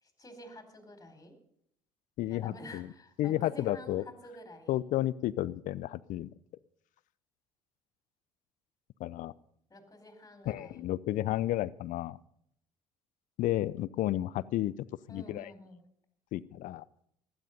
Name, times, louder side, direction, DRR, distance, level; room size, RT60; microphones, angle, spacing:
voice 1, 0.0-1.3 2.3-4.8 9.7-10.9 15.1-15.8, left 1 dB, 20° left, 6 dB, 4.4 m, -49 dB
voice 2, 2.2-2.9 3.2-4.0 4.7-6.3 9.0-9.3 10.5-12.2 13.4-14.7 15.1-15.5 16.3-16.8, left 14 dB, 60° left, 20 dB, 0.7 m, -32 dB
16.0 x 12.0 x 5.4 m, 0.70 s
hypercardioid pair, 60°, 15 cm